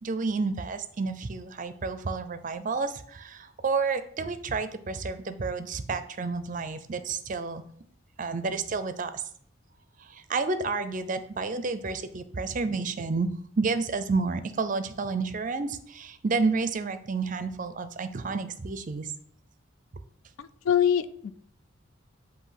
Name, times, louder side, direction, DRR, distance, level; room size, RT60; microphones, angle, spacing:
voice 1, 0.0-7.6 8.2-9.2 10.0-13.3 13.6-19.1, right 4 dB, 40° right, 11 dB, 0.5 m, -30 dB
voice 2, 20.4-21.3, left 9 dB, 85° left, 14 dB, 0.4 m, -24 dB
8.1 x 2.7 x 5.8 m, 0.62 s
head